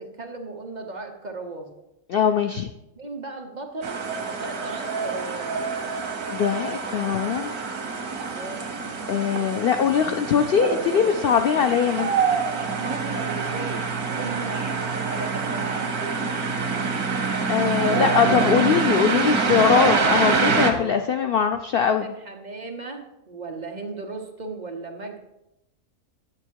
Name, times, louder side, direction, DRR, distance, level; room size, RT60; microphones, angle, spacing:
voice 1, 0.0-1.7 3.0-4.1 4.4-5.6 8.3-8.7 11.6-16.2 20.6-21.0 21.8-25.2, right 3 dB, 35° right, 3 dB, 1.0 m, -36 dB
voice 2, 2.1-2.7 6.3-7.5 9.1-12.1 17.5-22.0, left 7 dB, 85° left, 7 dB, 0.5 m, -21 dB
sound 1, 3.8-20.7, right 4 dB, 85° right, 1.7 m, -26 dB
9.7 x 7.1 x 4.6 m, 0.91 s
omnidirectional pair, 1.5 m